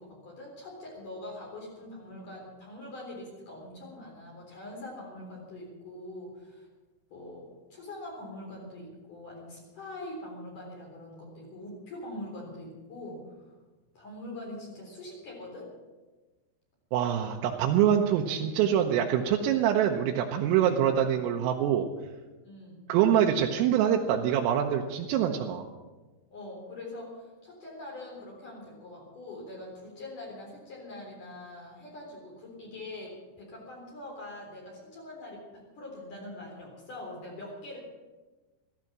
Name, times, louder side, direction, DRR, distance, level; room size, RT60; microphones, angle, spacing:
voice 1, 0.0-6.7 7.1-13.5 13.9-15.7 22.4-22.9 26.3-37.8, left 1 dB, 40° left, -3 dB, 4.9 m, -43 dB
voice 2, 16.9-21.9 22.9-25.7, right 9 dB, 85° right, 0 dB, 3.6 m, -25 dB
15.0 x 14.5 x 6.1 m, 1.2 s
omnidirectional pair, 5.9 m